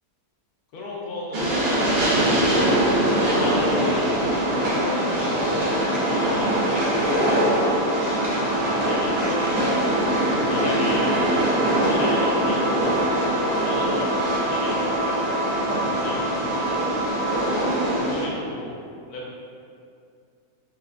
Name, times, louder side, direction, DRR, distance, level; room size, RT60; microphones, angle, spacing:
voice 1, 0.7-1.6 3.1-5.7 6.0-7.6 8.6-9.5 10.5-11.2 11.7-12.9 13.3-15.2 15.9-16.3 17.9-18.7 19.1-19.3, left 2 dB, 75° left, -4 dB, 1.1 m, -35 dB
Train, 1.3-18.2, right 1 dB, 55° right, 0.7 m, -23 dB
sound 1, 2.1-18.1, right 1 dB, 20° right, 1.0 m, -30 dB
5.5 x 2.2 x 2.4 m, 2.4 s
omnidirectional pair, 1.6 m